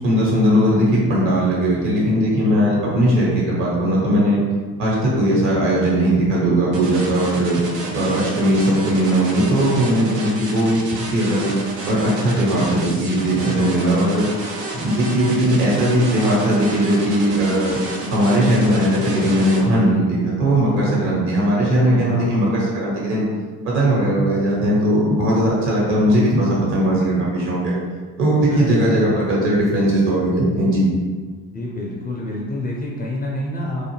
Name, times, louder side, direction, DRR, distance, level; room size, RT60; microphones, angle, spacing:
voice 1, 0.0-4.4 4.8-7.6 7.9-11.5 11.9-14.3 14.7-17.8 18.1-23.2 23.6-27.7 28.2-30.9, right 1 dB, 65° right, -5 dB, 1.2 m, -18 dB
sound 1, 6.7-19.6, right 1 dB, 90° right, 0.6 m, -30 dB
voice 2, 13.4-14.2 20.6-21.1 21.7-22.4 28.5-29.3 31.5-33.9, left 1 dB, 20° left, -3 dB, 0.4 m, -28 dB
2.4 x 2.2 x 3.0 m, 1.5 s
hypercardioid pair, 55°, 46 cm